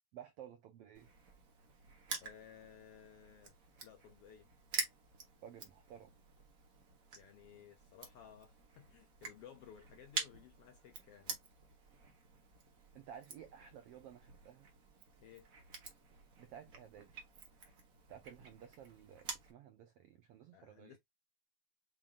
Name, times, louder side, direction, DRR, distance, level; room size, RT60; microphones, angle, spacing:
voice 1, 0.1-1.1 5.4-6.1 12.9-14.7 16.4-17.1 18.1-21.0, right 9 dB, 85° right, 1.3 m, -54 dB
Crushing, 0.9-19.5, right 4 dB, 45° right, 1.1 m, -48 dB
voice 2, 2.2-3.5 3.8-4.5 7.1-11.4 15.2-15.5 20.5-21.0, left 9 dB, 75° left, 1.4 m, -58 dB
7.2 x 2.6 x 2.4 m
omnidirectional pair, 3.4 m